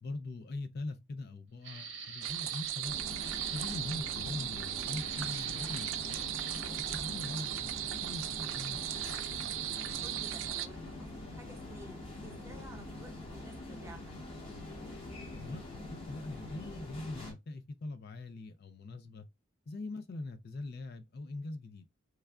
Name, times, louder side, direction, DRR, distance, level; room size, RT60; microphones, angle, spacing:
voice 1, 0.0-3.0 3.3-6.3 6.9-8.8 15.3-15.6 15.9-19.3 19.7-21.9, left 2 dB, 55° left, 0.4 m, -42 dB
sound 1, 1.6-2.9 3.2-3.8 4.9-6.8, right 6 dB, 70° right, 0.8 m, -45 dB
sound 2, 2.2-10.7, right 12 dB, 85° right, 0.4 m, -37 dB
sound 3, 2.8-17.3, left 2 dB, 30° left, 1.2 m, -45 dB
voice 2, 9.8-14.1, equal, 15° right, 0.8 m, -53 dB
3.2 x 2.3 x 3.5 m
head